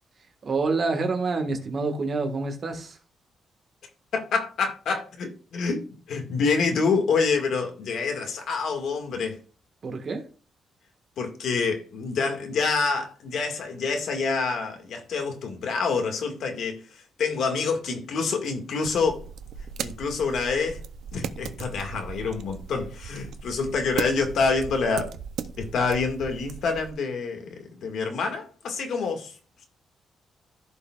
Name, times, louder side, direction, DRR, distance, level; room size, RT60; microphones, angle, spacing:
voice 1, 0.4-3.0 9.8-10.2, right 3 dB, 40° right, 1.5 m, -27 dB
voice 2, 4.1-5.8 6.1-9.4 11.2-19.2 19.8-20.8 21.1-25.1 25.6-29.3, left 4 dB, 70° left, 1.8 m, -27 dB
sound 1, 18.8-26.9, right 7 dB, 75° right, 0.6 m, -37 dB
15.0 x 5.4 x 2.4 m
cardioid pair, 145°, 0 cm